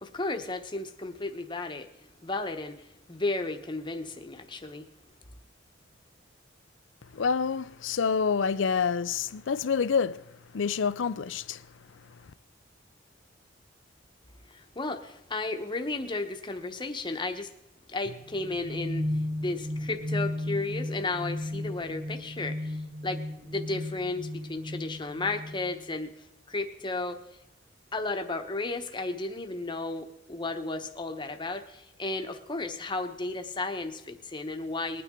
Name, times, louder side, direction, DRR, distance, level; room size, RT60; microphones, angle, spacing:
voice 1, 0.0-1.9 2.2-2.8 3.1-4.8 14.5-17.5 17.9-19.0 19.4-26.1 26.5-27.2 27.9-35.0, left 2 dB, 25° left, 1.0 m, -33 dB
voice 2, 7.1-10.2 10.5-11.6, left 6 dB, 75° left, 0.5 m, -27 dB
sound 1, 18.0-25.8, left 1 dB, 90° right, 1.5 m, -35 dB
20.5 x 9.3 x 3.7 m
head